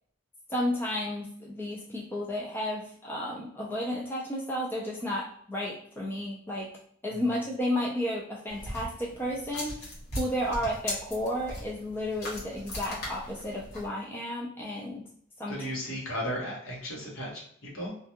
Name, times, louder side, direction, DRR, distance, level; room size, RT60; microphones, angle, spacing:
voice 1, 0.5-6.7 7.0-9.9 10.2-15.0 15.4-15.6, left 1 dB, 10° left, -3 dB, 0.3 m, -32 dB
sound 1, 8.5-13.9, left 1 dB, 45° left, 1.0 m, -39 dB
voice 2, 15.5-18.0, equal, 70° left, -3 dB, 1.0 m, -35 dB
2.4 x 2.2 x 2.7 m, 0.64 s
head